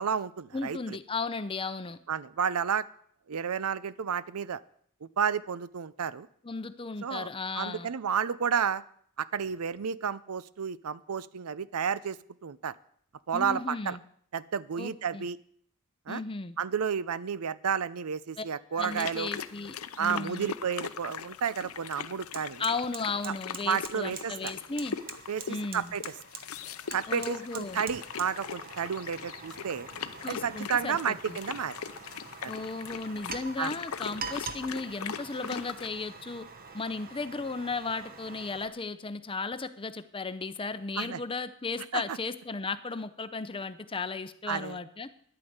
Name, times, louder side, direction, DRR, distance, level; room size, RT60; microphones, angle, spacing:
voice 1, 0.0-1.0 2.1-2.9 3.3-4.6 5.2-6.3 7.0-7.3 7.6-8.8 9.2-12.2 12.4-12.7 13.3-14.0 14.3-15.4 16.1-16.2 16.6-19.3 20.0-22.6 23.2-23.3 23.7-24.5 25.3-26.0 26.9-29.9 30.3-31.8 32.4-32.5 33.6-33.7 41.0-41.2 41.9-42.2 44.5-44.8, right 7 dB, 85° right, 18 dB, 0.6 m, -31 dB
voice 2, 0.5-2.0 6.4-7.9 13.3-14.0 14.8-15.3 16.1-16.6 18.4-18.5 18.7-20.5 22.6-25.0 25.5-25.9 27.1-27.8 30.2-31.4 32.5-36.4 36.7-45.1, left 4 dB, 25° left, 12 dB, 0.7 m, -35 dB
sound 1, 18.8-35.9, left 7 dB, 70° left, 0.6 m, -41 dB
Fire, 21.2-21.3 21.7-38.7, right 5 dB, 40° right, 1.0 m, -45 dB
10.5 x 8.9 x 8.0 m, 0.64 s
head